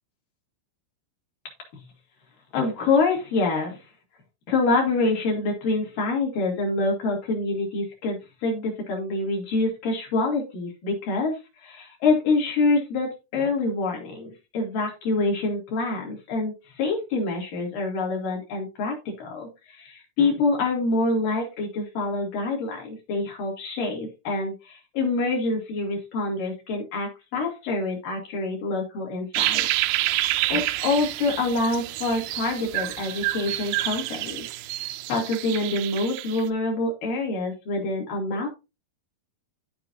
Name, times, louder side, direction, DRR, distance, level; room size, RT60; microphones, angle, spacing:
voice 1, 2.5-3.8 4.5-29.7 30.5-34.5 34.8-38.5, left 3 dB, 55° left, 0 dB, 4.0 m, -26 dB
sound 1, 29.3-36.4, right 16 dB, 80° right, 2.3 m, -28 dB
14.0 x 4.8 x 2.7 m, 0.26 s
omnidirectional pair, 4.8 m